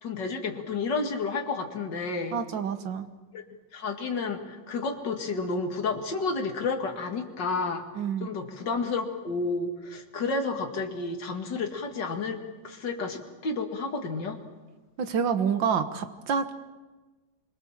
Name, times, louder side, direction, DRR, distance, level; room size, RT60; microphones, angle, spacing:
voice 1, 0.0-2.4 3.3-3.4 3.7-7.8 8.2-14.4, left 4 dB, 70° left, 3 dB, 2.8 m, -31 dB
voice 2, 2.3-3.1 8.0-8.3 15.0-16.5, right 7 dB, 80° right, 9 dB, 2.0 m, -28 dB
26.0 x 23.5 x 7.3 m, 1.2 s
omnidirectional pair, 2.0 m